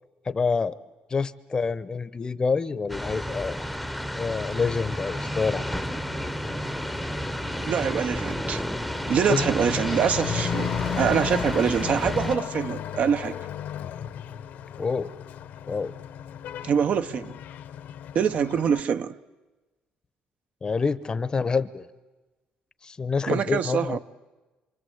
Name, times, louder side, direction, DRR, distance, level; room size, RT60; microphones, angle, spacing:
voice 1, 0.3-0.8 1.1-3.6 4.2-5.8 9.3-9.5 14.8-15.1 15.7-16.0 20.6-21.9 22.8-24.0, left 4 dB, 25° left, 0.8 m, -27 dB
sound 1, 2.9-12.4, equal, ahead, 0.8 m, -31 dB
Truck / Accelerating revving vroom, 4.4-18.8, left 10 dB, 75° left, 1.2 m, -36 dB
voice 2, 7.7-8.6 9.1-10.7 11.0-13.5 16.6-17.4 18.1-19.2 23.3-24.0, right 7 dB, 50° right, 0.8 m, -24 dB
27.0 x 25.0 x 8.0 m
cardioid pair, 130°, 3 cm